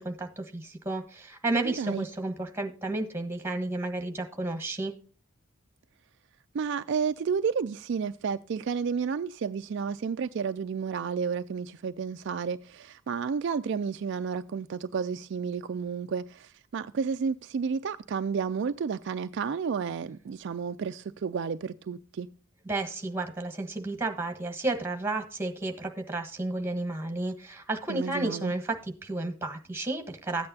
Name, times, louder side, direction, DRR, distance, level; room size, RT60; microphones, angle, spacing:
voice 1, 0.0-4.9 22.6-30.5, right 2 dB, 10° right, 1.3 m, -32 dB
voice 2, 1.6-2.0 6.5-22.3 27.9-28.5, right 6 dB, 55° right, 0.3 m, -31 dB
13.5 x 8.7 x 2.7 m
head